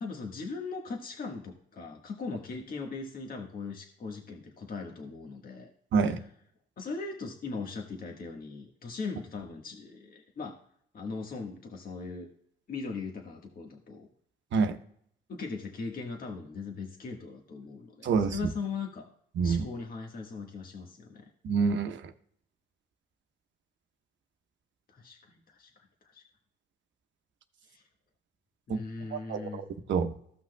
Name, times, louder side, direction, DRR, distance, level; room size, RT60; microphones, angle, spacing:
voice 1, 0.0-5.7 6.1-6.2 6.8-10.6 10.9-12.3 12.7-14.1 15.3-19.1 19.4-21.3 24.9-25.7 26.0-26.2 27.6-27.8 28.7-29.6, left 4 dB, 45° left, 1 dB, 1.4 m, -39 dB
voice 2, 18.0-18.4 19.4-19.7 21.4-22.1 28.7-28.8 29.1-30.1, right 5 dB, 65° right, 7 dB, 1.0 m, -27 dB
15.5 x 5.9 x 2.2 m, 0.66 s
cardioid pair, 90°, 20 cm